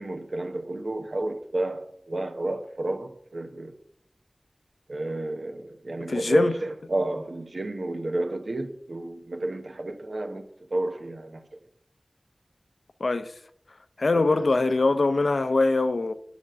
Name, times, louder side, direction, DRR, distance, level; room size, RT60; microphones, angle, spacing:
voice 1, 0.0-3.8 4.9-10.5 10.7-11.4 14.1-14.5, right 2 dB, 75° right, 0.9 m, -31 dB
voice 2, 6.1-6.5 13.0-13.3 14.0-16.1, left 3 dB, 80° left, 0.6 m, -22 dB
8.7 x 5.2 x 7.6 m
wide cardioid pair, 40°, 0 cm